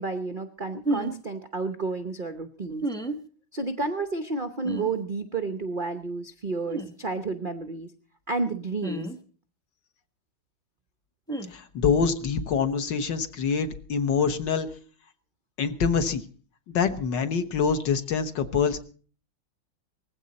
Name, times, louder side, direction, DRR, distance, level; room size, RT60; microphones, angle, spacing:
voice 1, 0.0-2.9 3.5-7.9 8.3-9.1, right 3 dB, 60° right, 9 dB, 0.5 m, -31 dB
sound 1, 0.8-1.1 2.8-3.2 4.6-4.9 6.7-6.9 8.8-9.2 11.3-11.5, right 2 dB, 5° left, 0.8 m, -30 dB
voice 2, 11.5-14.7 15.6-16.2 16.7-18.8, left 6 dB, 60° left, 9 dB, 1.8 m, -25 dB
19.5 x 15.5 x 4.1 m, 0.42 s
omnidirectional pair, 2.3 m